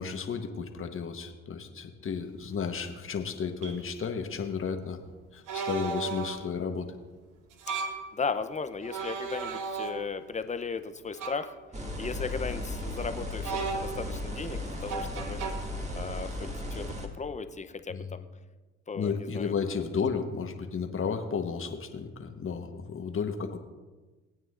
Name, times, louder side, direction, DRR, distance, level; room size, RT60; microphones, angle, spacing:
voice 1, 0.0-5.0 5.3-7.0 17.9-18.1 18.9-23.6, left 6 dB, 40° left, 6 dB, 1.3 m, -33 dB
sound 1, 2.7-2.8 3.6-3.8 5.5-6.5 7.5-8.1 8.8-10.3 11.2-11.5 13.4-14.2 14.9-15.5, right 4 dB, 65° right, 1.2 m, -35 dB
voice 2, 7.8-11.5 12.0-15.4 15.9-18.2 18.9-19.5, left 5 dB, 20° left, 10 dB, 0.8 m, -36 dB
sound 2, 11.7-17.1, left 1 dB, 20° right, 1.9 m, -36 dB
19.0 x 9.1 x 2.6 m, 1.2 s
hypercardioid pair, 55°, 33 cm